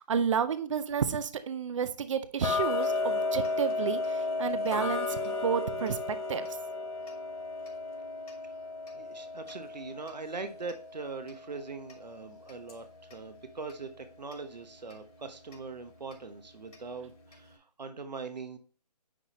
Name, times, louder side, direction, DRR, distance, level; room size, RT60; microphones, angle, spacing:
voice 1, 0.0-6.5, right 7 dB, 50° right, 13 dB, 0.7 m, -31 dB
Tick-tock, 2.4-13.3 13.7-13.8 14.3-14.4 14.9-15.0 15.5-15.6 16.1-16.2 16.7-16.8 17.3-17.4, left 3 dB, 60° left, 2.3 m, -34 dB
voice 2, 8.9-18.6, right 4 dB, 80° right, 8 dB, 1.1 m, -41 dB
9.8 x 4.1 x 3.0 m, 0.41 s
figure-of-eight pair, 155°, 21 cm